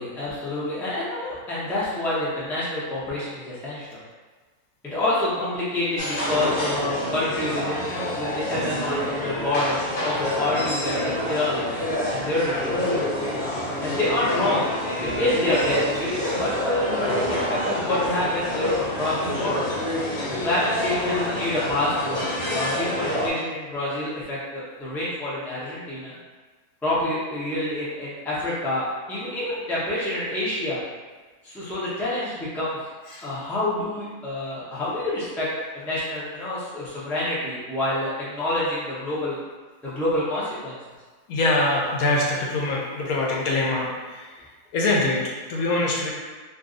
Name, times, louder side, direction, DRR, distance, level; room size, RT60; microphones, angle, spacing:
voice 1, 0.0-3.9 4.8-11.8 12.1-13.0 13.8-14.7 15.0-19.7 20.4-22.2 22.5-26.2 26.8-30.8 31.4-32.8 33.2-35.5 35.7-39.4 39.8-40.7, left 1 dB, ahead, -9 dB, 0.5 m, -27 dB
sound 1, 6.0-23.3, left 1 dB, 45° left, 0.8 m, -27 dB
voice 2, 41.3-46.1, left 2 dB, 75° left, -2 dB, 1.1 m, -24 dB
2.6 x 2.6 x 3.7 m, 1.4 s
omnidirectional pair, 1.6 m